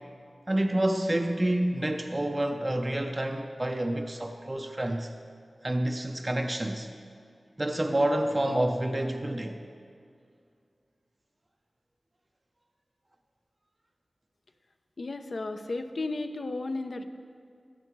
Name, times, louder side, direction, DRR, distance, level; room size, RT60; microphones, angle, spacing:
voice 1, 0.5-5.1 5.6-6.9 7.6-9.6, right 1 dB, 30° right, 5 dB, 0.6 m, -28 dB
voice 2, 15.0-17.0, left 2 dB, 60° left, 7 dB, 0.7 m, -34 dB
16.0 x 6.8 x 4.7 m, 2.3 s
wide cardioid pair, 55°, 0 cm